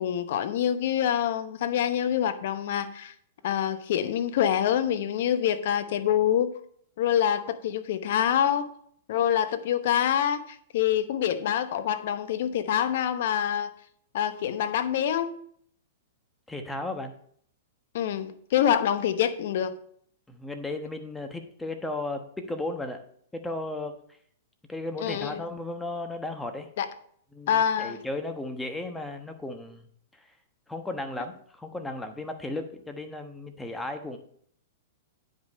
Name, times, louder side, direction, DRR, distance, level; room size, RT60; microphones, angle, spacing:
voice 1, 0.0-3.1 3.4-6.5 7.0-8.7 9.1-13.7 14.1-15.4 17.9-19.7 25.0-25.4 26.8-26.9 27.5-28.0, left 9 dB, 60° left, 10 dB, 0.9 m, -26 dB
voice 2, 16.5-17.1 20.3-23.0 23.3-24.0 24.7-26.7 27.3-30.3 30.7-34.2, left 2 dB, 5° left, 6 dB, 1.1 m, -35 dB
9.3 x 5.3 x 5.3 m, 0.62 s
hypercardioid pair, 125°, 0 cm